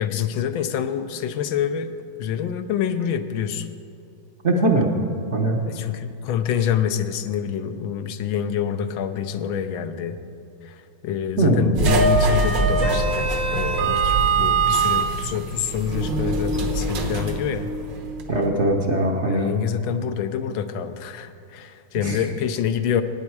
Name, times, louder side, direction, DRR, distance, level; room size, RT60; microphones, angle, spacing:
voice 1, 0.0-1.9 2.2-3.7 5.7-10.2 10.6-17.7 19.3-23.0, left 9 dB, 80° left, 10 dB, 1.5 m, -26 dB
voice 2, 4.4-4.9 5.3-5.6 11.4-11.7 18.3-19.5 22.0-22.2, right 2 dB, 45° right, 1 dB, 1.0 m, -21 dB
sound 1, 11.7-18.3, right 3 dB, 65° right, 1.7 m, -22 dB
16.0 x 9.5 x 4.6 m, 2.7 s
omnidirectional pair, 2.2 m